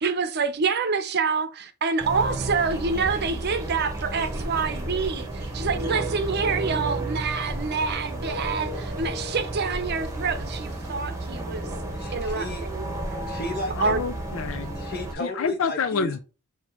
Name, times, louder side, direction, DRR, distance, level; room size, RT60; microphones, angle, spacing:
voice 1, 0.0-11.7 12.1-12.8 13.8-14.0, right 5 dB, 50° right, 0.7 m, -27 dB
sound 1, 2.0-15.1, right 2 dB, 15° right, 1.1 m, -32 dB
voice 2, 11.9-12.7 13.0-13.9 14.7-16.1, left 1 dB, 50° left, 1.4 m, -34 dB
voice 3, 13.8-14.7 15.2-16.2, left 5 dB, 65° left, 0.5 m, -28 dB
6.0 x 2.8 x 3.0 m
head